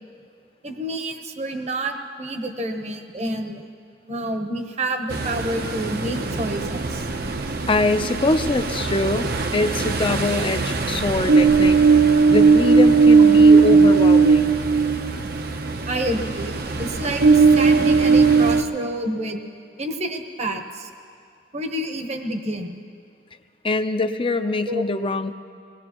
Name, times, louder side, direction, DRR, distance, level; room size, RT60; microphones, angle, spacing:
voice 1, 0.6-3.7 4.1-7.1 15.9-19.4 19.8-20.9 21.5-22.8 24.7-24.8, right 1 dB, 40° right, 5 dB, 1.0 m, -28 dB
Ocean, 5.1-18.6, right 4 dB, 60° right, 0.8 m, -18 dB
voice 2, 7.7-11.8 12.3-14.6 23.6-25.3, left 2 dB, 30° left, 9 dB, 0.6 m, -23 dB
23.5 x 19.5 x 3.0 m, 2.3 s
head